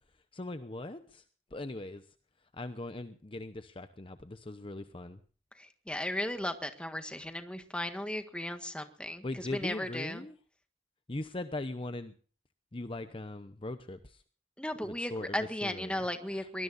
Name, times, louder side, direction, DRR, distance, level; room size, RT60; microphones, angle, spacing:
voice 1, 0.3-1.2 1.5-2.1 2.5-5.2 9.2-10.3 11.1-12.1 12.7-14.2 14.8-16.0 16.3-16.5, left 2 dB, 30° left, 10 dB, 0.8 m, -40 dB
voice 2, 5.6-10.2 14.6-16.6, left 1 dB, 5° left, 8 dB, 1.6 m, -36 dB
23.5 x 20.0 x 2.6 m, 0.41 s
head